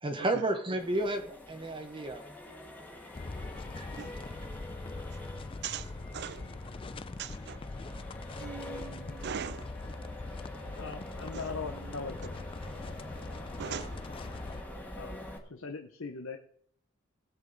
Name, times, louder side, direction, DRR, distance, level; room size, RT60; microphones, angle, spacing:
voice 1, 0.0-2.2 3.7-3.9, right 1 dB, 25° right, 0.9 m, -32 dB
Accelerating revving vroom, 0.8-15.4, left 1 dB, 10° left, 1.4 m, -46 dB
sound 1, 3.1-14.6, left 3 dB, 25° left, 0.4 m, -42 dB
voice 2, 5.6-6.5 7.2-7.6 8.4-9.7 11.3-11.4 13.6-14.0, right 8 dB, 50° right, 0.4 m, -40 dB
voice 3, 10.8-12.5 15.0-15.2 15.5-16.4, left 4 dB, 70° left, 0.8 m, -40 dB
18.5 x 7.4 x 3.9 m
head